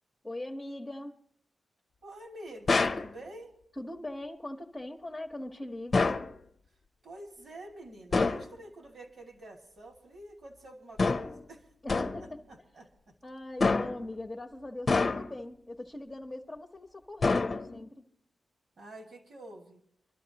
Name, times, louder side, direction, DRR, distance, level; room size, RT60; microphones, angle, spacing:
voice 1, 0.2-1.1 3.8-6.1 11.8-12.4 13.2-18.0, left 1 dB, 15° left, 0 dB, 1.1 m, -41 dB
voice 2, 2.0-3.5 7.0-13.1 18.8-19.8, right 1 dB, 60° right, 1 dB, 2.3 m, -48 dB
sound 1, 2.7-3.1 5.9-6.3 8.1-8.5 11.0-11.4 11.9-12.3 13.6-14.1 14.9-15.5 17.2-17.9, left 3 dB, 35° left, 0.8 m, -27 dB
26.0 x 12.5 x 2.9 m, 0.67 s
wide cardioid pair, 120°, 0 cm